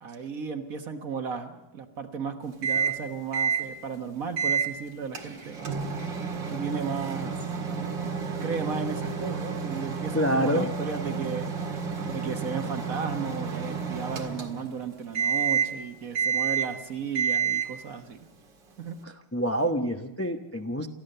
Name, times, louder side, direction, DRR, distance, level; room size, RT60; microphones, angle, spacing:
voice 1, 0.0-5.9 6.5-7.3 7.7-8.1 8.4-11.5 12.0-18.2 18.8-19.0, right 6 dB, 50° right, 6 dB, 1.7 m, -35 dB
Microwave oven, 2.6-3.0 3.3-3.7 4.4-4.7 5.1-14.8 15.1-15.8 16.1-16.8 17.1-17.8, right 6 dB, 80° right, 2.7 m, -30 dB
voice 2, 10.1-10.7 19.0-20.9, equal, 15° left, 5 dB, 0.5 m, -27 dB
28.5 x 13.5 x 6.7 m, 0.95 s
omnidirectional pair, 2.0 m